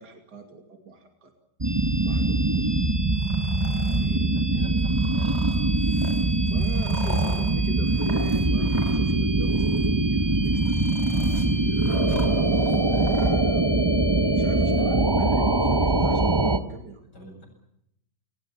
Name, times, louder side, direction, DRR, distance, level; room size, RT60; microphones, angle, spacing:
voice 1, 0.0-1.3 2.0-2.7 6.4-10.8 13.1-13.9 14.3-16.4 16.7-17.0, right 3 dB, 75° right, 4 dB, 3.2 m, -40 dB
sound 1, 1.6-16.6, right 2 dB, 15° right, 1.2 m, -22 dB
sound 2, 3.1-4.1 4.9-9.2 9.4-9.9 10.3-13.3, left 1 dB, 25° left, 4.3 m, -39 dB
voice 2, 4.0-5.6 11.1-11.5 12.0-12.8 14.8-14.9 16.4-16.6 17.1-17.5, equal, 80° left, 4 dB, 8.7 m, -46 dB
29.5 x 20.5 x 7.2 m, 0.79 s
omnidirectional pair, 1.8 m